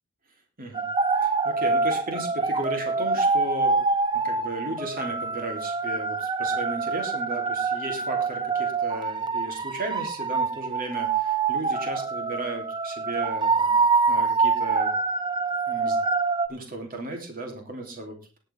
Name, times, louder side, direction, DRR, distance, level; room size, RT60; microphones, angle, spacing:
voice 1, 0.6-0.9 1.2-3.9 4.1-13.8 14.1-14.9 15.7-16.0 16.5-18.4, right 2 dB, 40° right, 2 dB, 3.1 m, -35 dB
sound 1, 0.7-16.5, right 4 dB, 20° right, 0.6 m, -25 dB
19.0 x 7.6 x 3.5 m, 0.32 s
head